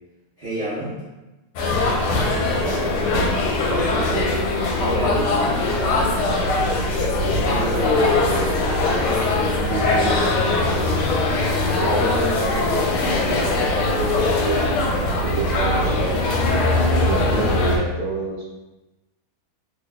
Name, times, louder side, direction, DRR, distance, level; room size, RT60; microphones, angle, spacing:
voice 1, 0.4-1.0 4.7-5.5 5.8-6.4 7.2-8.6, equal, 90° right, -11 dB, 0.5 m, -29 dB
sound 1, 1.6-17.8, left 2 dB, 85° left, 1.5 m, -21 dB
voice 2, 2.3-4.4 7.4-8.0 9.3-11.2 11.8-12.9 13.1-15.7 16.0-16.6 17.0-18.5, right 2 dB, 70° right, -6 dB, 1.0 m, -29 dB
3.4 x 2.1 x 3.6 m, 1.1 s
omnidirectional pair, 2.3 m